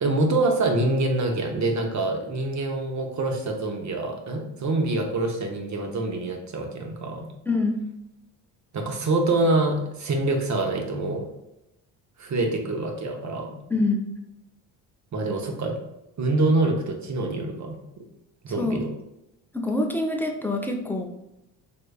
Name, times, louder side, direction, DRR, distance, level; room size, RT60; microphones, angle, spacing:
voice 1, 0.0-7.3 8.7-11.3 12.2-13.6 15.1-15.8 16.2-18.0 18.4-18.9, right 2 dB, 40° right, 3 dB, 0.7 m, -25 dB
voice 2, 7.5-7.8 13.7-14.1 18.6-18.8 19.5-21.1, left 2 dB, 5° left, 2 dB, 0.4 m, -25 dB
3.4 x 3.0 x 2.2 m, 0.89 s
supercardioid pair, 65°, 45 cm